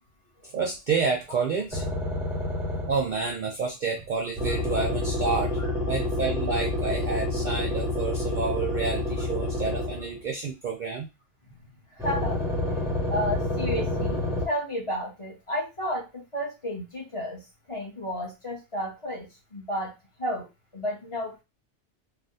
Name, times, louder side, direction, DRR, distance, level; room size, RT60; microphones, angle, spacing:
voice 1, 0.5-1.8 2.9-5.5 5.8-11.1, right 4 dB, 55° right, 2 dB, 0.6 m, -29 dB
sound 1, 1.7-3.1 4.4-10.2 12.0-14.4, left 1 dB, 5° right, 0.7 m, -28 dB
voice 2, 11.9-12.4 13.1-17.4 17.7-19.9 20.2-21.4, equal, 30° left, -3 dB, 1.1 m, -32 dB
3.3 x 2.3 x 2.6 m, 0.25 s
omnidirectional pair, 1.2 m